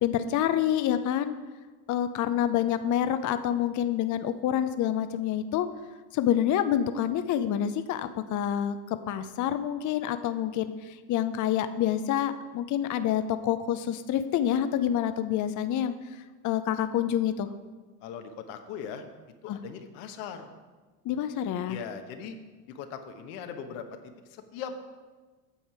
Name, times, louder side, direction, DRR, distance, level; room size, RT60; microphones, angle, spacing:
voice 1, 0.0-1.3 1.9-5.7 6.1-10.7 11.1-15.9 16.4-17.5 19.5-19.6 21.1-21.8, left 10 dB, 40° left, 10 dB, 0.6 m, -27 dB
voice 2, 18.0-19.1 19.4-20.5 21.7-22.4 22.7-24.0 24.3-24.8, left 7 dB, 70° left, 7 dB, 1.2 m, -39 dB
8.5 x 7.2 x 4.8 m, 1.3 s
supercardioid pair, 85°, 47 cm